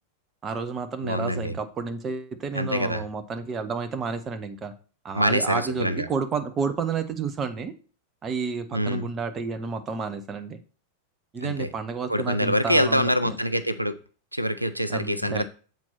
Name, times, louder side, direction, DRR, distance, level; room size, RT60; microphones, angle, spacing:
voice 1, 0.4-4.7 5.0-7.7 8.2-10.6 11.3-13.4 14.9-15.5, right 5 dB, 25° right, 8 dB, 0.9 m, -31 dB
voice 2, 1.0-1.5 2.5-3.0 5.1-6.1 8.7-9.1 11.4-11.7 12.1-14.0 14.3-15.5, equal, 90° right, 12 dB, 0.4 m, -25 dB
7.5 x 4.5 x 5.8 m, 0.39 s
figure-of-eight pair, 90°, 0 cm